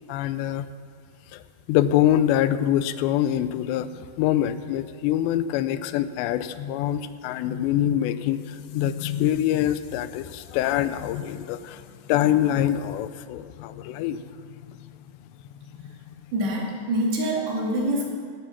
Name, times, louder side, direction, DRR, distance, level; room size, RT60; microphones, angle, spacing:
voice 1, 0.1-0.7 1.3-1.4 1.7-15.0 15.8-15.9, left 11 dB, 85° left, 13 dB, 2.7 m, -25 dB
voice 2, 16.3-18.1, right 1 dB, 75° right, -2 dB, 4.5 m, -25 dB
17.0 x 9.0 x 5.9 m, 2.1 s
omnidirectional pair, 5.0 m